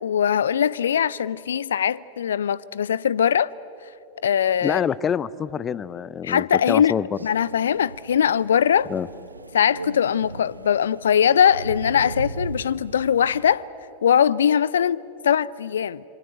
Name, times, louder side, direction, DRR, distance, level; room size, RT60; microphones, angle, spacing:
voice 1, 0.0-3.5 4.2-4.8 6.2-6.9 7.2-8.9 9.5-13.7 14.0-16.0, left 8 dB, 65° left, 0.5 m, -21 dB
voice 2, 4.6-7.2 8.9-9.1, left 8 dB, 25° left, 0.6 m, -26 dB
Crow, 7.1-13.5, right 3 dB, 80° right, 0.7 m, -38 dB
27.0 x 25.0 x 8.0 m
figure-of-eight pair, 90°, 0 cm